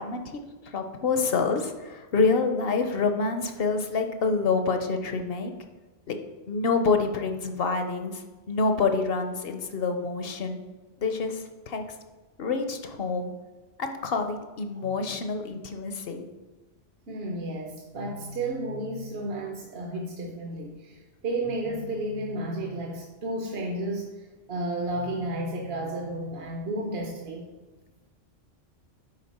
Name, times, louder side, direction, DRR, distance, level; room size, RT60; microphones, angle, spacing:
voice 1, 0.0-5.5 6.1-6.2 6.5-10.6 11.0-11.8 12.4-13.3 13.8-16.3, left 4 dB, 60° left, 6 dB, 0.8 m, -27 dB
voice 2, 17.1-27.4, right 1 dB, 60° right, 0 dB, 1.0 m, -32 dB
10.5 x 4.0 x 4.2 m, 1.3 s
omnidirectional pair, 1.2 m